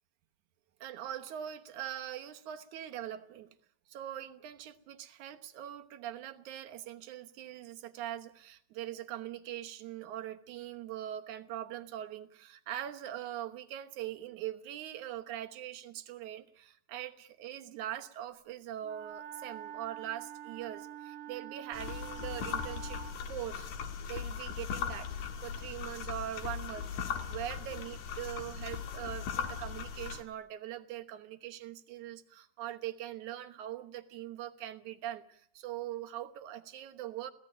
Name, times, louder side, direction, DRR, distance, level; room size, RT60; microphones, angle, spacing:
voice 1, 0.8-3.5 3.9-23.0 23.3-23.7 24.1-26.9 27.3-37.3, right 12 dB, 80° right, 6 dB, 2.6 m, -42 dB
Wind instrument woodwind instrument, 18.8-23.2, right 11 dB, 60° right, 1.8 m, -46 dB
sound 1, 21.7-30.2, left 7 dB, 85° left, 3.2 m, -38 dB
23.5 x 16.5 x 8.9 m, 0.71 s
omnidirectional pair, 3.4 m